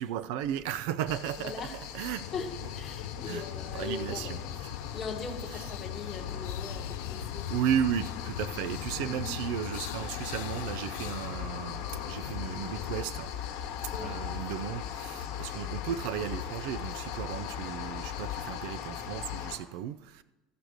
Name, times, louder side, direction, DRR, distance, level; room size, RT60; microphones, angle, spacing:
voice 1, 0.0-2.3 2.9-4.9 5.5-5.7 7.5-13.3 13.8-20.2, right 10 dB, 60° right, 0.3 m, -35 dB
sound 1, 1.1-19.6, left 9 dB, 65° left, 1.2 m, -39 dB
voice 2, 1.4-1.7 2.3-4.4 4.9-7.5 9.1-9.3 13.9-14.2, left 4 dB, 15° left, 1.1 m, -40 dB
sound 2, 2.2-13.0, left 9 dB, 90° left, 0.5 m, -40 dB
14.5 x 5.0 x 6.3 m
cardioid pair, 180°, 0 cm